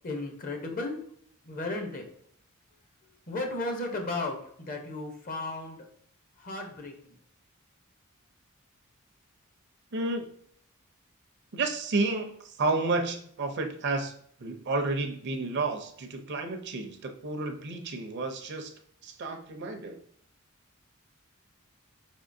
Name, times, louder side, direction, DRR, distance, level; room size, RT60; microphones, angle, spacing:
voice 1, 0.0-1.0 1.5-2.1 3.3-5.8 6.4-7.1, left 2 dB, 40° left, 3 dB, 0.7 m, -34 dB
voice 2, 9.9-10.2 11.5-14.1 14.4-18.7 19.0-20.0, right 3 dB, 50° right, 5 dB, 0.5 m, -31 dB
4.5 x 3.6 x 2.6 m, 0.66 s
head